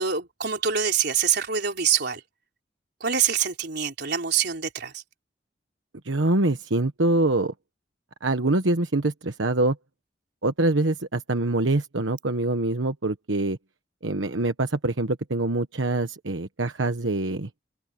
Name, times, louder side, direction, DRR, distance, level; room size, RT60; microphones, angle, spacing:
voice 1, 0.0-2.2 3.0-5.0, right 7 dB, 60° right, 4.2 m, -25 dB
voice 2, 6.0-7.5 8.2-9.8 10.4-13.6 14.0-17.5, right 2 dB, 85° right, 1.2 m, -24 dB
open air
head